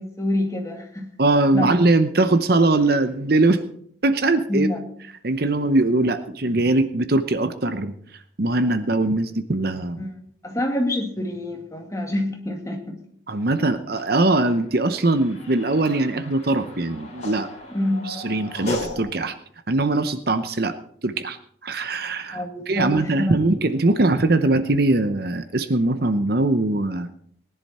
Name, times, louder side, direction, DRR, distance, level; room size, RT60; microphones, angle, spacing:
voice 1, 0.0-1.1 1.5-1.7 4.5-4.8 10.0-10.1 10.4-13.0 17.7-18.1 22.3-23.3, left 1 dB, 15° left, 1 dB, 2.3 m, -26 dB
voice 2, 1.2-3.6 4.0-4.7 5.2-7.9 8.4-10.0 13.3-17.5 18.1-19.3 19.7-20.7 21.0-21.4 21.6-22.4 22.7-27.1, right 2 dB, 50° right, 10 dB, 0.8 m, -21 dB
sound 1, 14.0-19.0, left 1 dB, 35° left, 2.8 m, -35 dB
19.0 x 10.5 x 4.3 m, 0.63 s
head